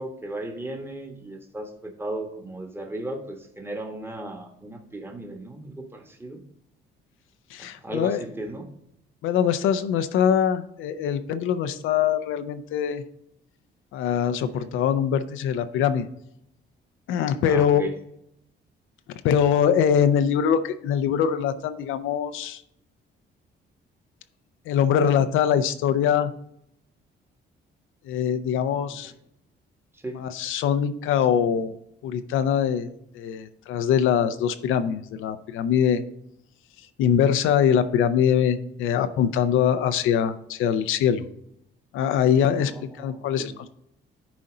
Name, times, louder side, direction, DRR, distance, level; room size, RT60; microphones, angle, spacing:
voice 1, 0.0-6.4 7.6-8.7 14.5-14.7 17.4-17.9 28.9-29.0 30.0-30.2 42.4-43.5, right 1 dB, 10° right, 3 dB, 1.2 m, -36 dB
voice 2, 7.5-8.2 9.2-13.0 13.9-16.1 17.1-17.9 19.2-22.6 24.7-26.3 28.1-29.1 30.1-31.7 32.0-32.9 33.1-36.0 37.0-41.2 41.9-42.7 43.0-43.5, left 8 dB, 85° left, 10 dB, 0.6 m, -23 dB
10.5 x 4.2 x 3.8 m, 0.76 s
cardioid pair, 90°, 20 cm